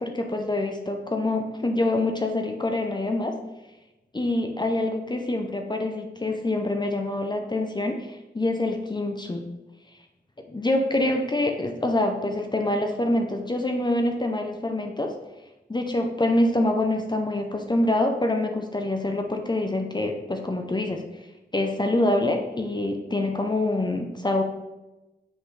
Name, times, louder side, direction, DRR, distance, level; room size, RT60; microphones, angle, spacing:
voice 1, 0.0-3.4 4.1-9.4 10.5-15.1 15.7-21.0 21.5-24.4, left 1 dB, 25° left, 3 dB, 0.6 m, -25 dB
6.2 x 5.2 x 3.3 m, 1.0 s
wide cardioid pair, 70°, 18 cm